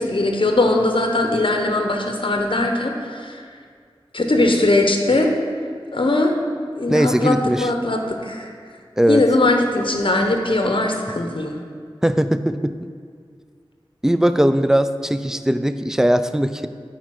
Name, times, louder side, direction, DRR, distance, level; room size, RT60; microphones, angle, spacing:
voice 1, 0.0-3.4 4.1-5.3 5.9-6.3 6.7-8.5 9.1-11.5, left 2 dB, 65° left, 3 dB, 1.0 m, -20 dB
voice 2, 6.9-7.7 9.0-9.2 12.0-12.9 14.0-16.7, equal, 5° right, 11 dB, 0.4 m, -19 dB
9.4 x 4.7 x 6.0 m, 2.1 s
wide cardioid pair, 45°, 9 cm